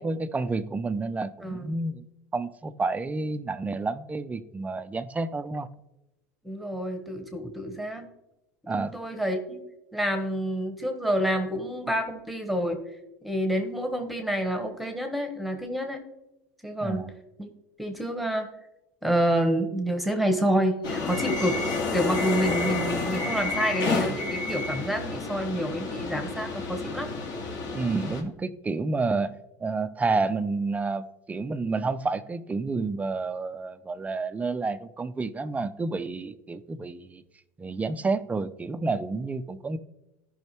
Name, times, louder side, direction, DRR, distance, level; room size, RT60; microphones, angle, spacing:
voice 1, 0.0-2.0 2.3-5.7 8.7-8.9 16.8-17.1 27.7-29.3 29.6-37.2 37.6-39.8, right 3 dB, 15° right, 0.5 m, -29 dB
voice 2, 1.4-1.7 6.4-8.1 8.7-9.6 9.9-12.8 13.2-16.0 16.6-17.1 17.4-17.5 17.8-18.5 19.0-21.6 21.9-27.1, equal, ahead, 1.2 m, -28 dB
sound 1, 20.8-28.2, left 3 dB, 50° left, 2.0 m, -30 dB
13.5 x 5.5 x 3.0 m
hypercardioid pair, 100°, 9 cm